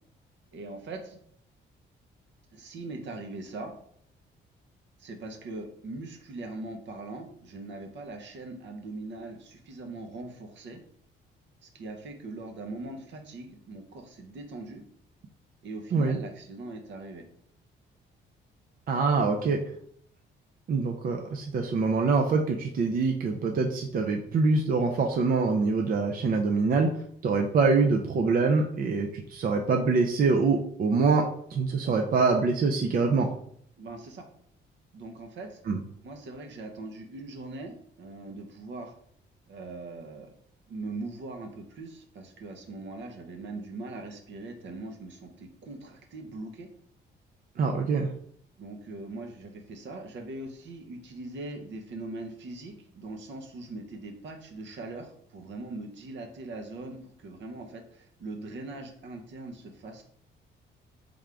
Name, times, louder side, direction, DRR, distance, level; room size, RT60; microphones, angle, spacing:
voice 1, 0.5-1.2 2.5-3.7 5.0-10.8 11.6-14.8 15.6-17.2 33.8-34.3 34.9-35.6 36.0-38.9 39.5-40.3 40.7-46.7 48.6-60.1, right 2 dB, 65° right, 4 dB, 0.8 m, -41 dB
voice 2, 18.9-19.6 20.7-26.9 27.2-31.2 31.5-33.3 35.7-35.8 47.6-48.1, right 4 dB, 45° right, 3 dB, 0.5 m, -24 dB
3.6 x 3.5 x 3.4 m, 0.66 s
cardioid pair, 90°, 20 cm